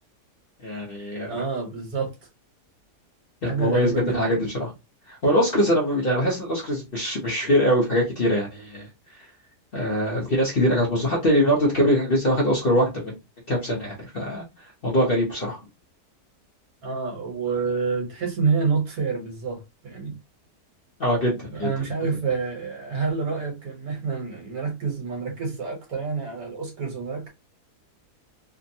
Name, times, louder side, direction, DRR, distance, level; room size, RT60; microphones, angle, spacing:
voice 1, 0.6-1.4 3.4-4.3 4.6-4.7 5.1-8.9 9.1-9.3 9.7-13.1 13.5-15.6 21.0-21.8, equal, 45° left, 0.8 m, -23 dB
voice 2, 1.3-2.1 3.4-4.4 16.8-20.1 21.5-27.3, right 5 dB, 65° right, 1.7 m, -28 dB
3.4 x 2.1 x 2.7 m
omnidirectional pair, 1.7 m